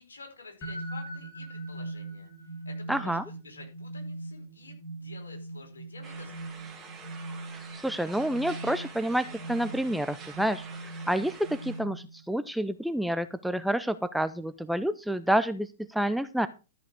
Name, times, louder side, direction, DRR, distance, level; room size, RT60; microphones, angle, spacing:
voice 1, 0.0-2.3 2.6-6.7, left 3 dB, 75° left, 1 dB, 4.8 m, -50 dB
sound 1, 0.6-12.3, right 2 dB, 30° left, 4.4 m, -41 dB
voice 2, 2.9-3.2 7.8-10.6 11.1-16.5, right 1 dB, ahead, 11 dB, 0.6 m, -28 dB
sound 2, 6.0-11.8, right 5 dB, 15° right, 2.8 m, -47 dB
13.0 x 5.9 x 4.7 m, 0.30 s
figure-of-eight pair, 110°, 0 cm